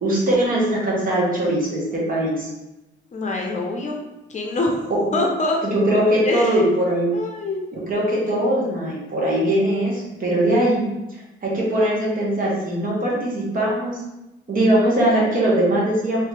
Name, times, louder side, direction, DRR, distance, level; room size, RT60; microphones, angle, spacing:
voice 1, 0.0-2.5 5.0-5.1 5.6-7.1 7.7-10.8 11.4-14.0 14.5-16.3, right 1 dB, 45° right, -4 dB, 1.3 m, -21 dB
voice 2, 3.1-4.0 4.3-4.8 5.1-5.6 6.2-6.6 7.1-7.6, left 2 dB, 35° left, 0 dB, 0.6 m, -24 dB
3.2 x 2.8 x 3.3 m, 0.98 s
cardioid pair, 90°, 20 cm